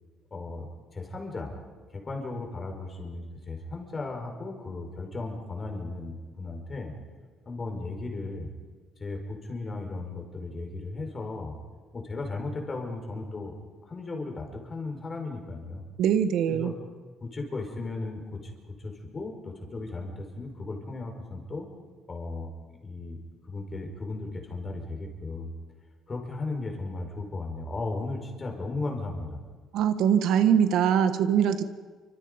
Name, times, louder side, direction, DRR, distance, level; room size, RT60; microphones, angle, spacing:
voice 1, 0.3-1.5 1.9-6.9 7.4-8.5 9.0-11.5 11.9-13.5 13.9-15.8 16.5-16.7 17.2-18.4 18.8-21.7 22.1-23.2 23.5-25.5 26.1-29.4, left 3 dB, 25° left, 2 dB, 5.0 m, -36 dB
voice 2, 16.0-16.7 29.7-31.6, right 8 dB, 70° right, 9 dB, 1.5 m, -22 dB
29.0 x 25.5 x 5.3 m, 1.4 s
cardioid pair, 145°, 0 cm